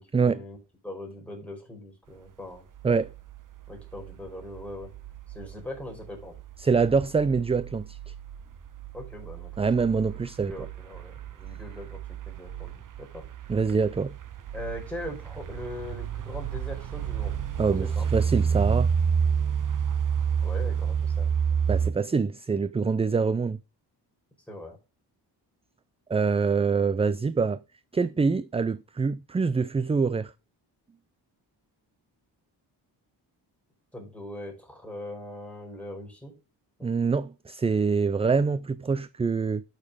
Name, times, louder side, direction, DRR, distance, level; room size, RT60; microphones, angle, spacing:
voice 1, 0.0-2.6 3.7-4.9 5.3-6.4 8.9-9.7 10.5-12.0 12.3-13.2 14.5-17.4 17.7-18.0 20.4-21.3 24.5-24.8 33.9-36.3 36.8-36.9, left 1 dB, 5° left, 4.7 m, -40 dB
sound 1, 2.8-21.9, right 7 dB, 45° right, 0.9 m, -30 dB
voice 2, 6.6-8.1 9.6-10.5 13.5-14.1 17.6-18.9 21.7-23.6 26.1-27.6 27.9-30.3 36.8-39.6, right 5 dB, 15° right, 0.3 m, -25 dB
8.4 x 6.7 x 3.6 m
cardioid pair, 85°, 43 cm